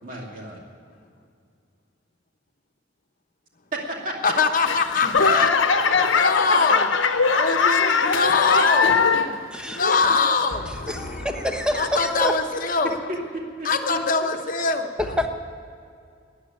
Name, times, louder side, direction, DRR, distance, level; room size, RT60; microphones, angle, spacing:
voice 1, 0.0-0.6 3.7-4.3 13.1-14.0 14.3-14.4, right 1 dB, 45° right, -1 dB, 2.6 m, -32 dB
voice 2, 4.2-5.5 6.0-7.0 7.4-9.0 9.7-12.9 13.6-14.9, left 4 dB, 45° left, 5 dB, 1.0 m, -23 dB
Laughter / Clapping / Crowd, 4.7-9.4 9.8-10.3 10.9-11.0, left 5 dB, 80° left, 0.9 m, -21 dB
voice 3, 9.5-10.0 10.9-12.3 15.0-15.3, left 1 dB, 5° right, 5 dB, 1.0 m, -27 dB
14.5 x 9.7 x 9.4 m, 2.4 s
head